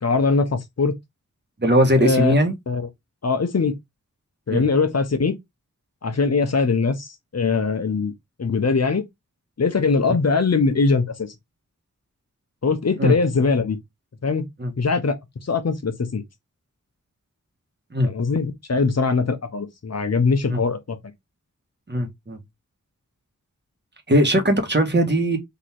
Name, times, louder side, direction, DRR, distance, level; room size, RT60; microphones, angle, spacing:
voice 1, 0.0-0.9 2.0-2.3 2.7-2.8 3.2-3.7 4.5-5.4 6.0-8.1 8.4-9.0 9.6-11.3 12.6-13.8 14.2-14.5 14.8-15.2 15.4-16.2 18.0-21.0, left 4 dB, 55° left, 1.0 m, -21 dB
voice 2, 1.6-2.5 4.5-4.6 13.0-13.1 14.6-14.7 17.9-18.1 20.5-20.6 21.9-22.4 24.1-25.4, equal, 35° right, 1.5 m, -19 dB
3.9 x 3.0 x 4.4 m
wide cardioid pair, 60°, 31 cm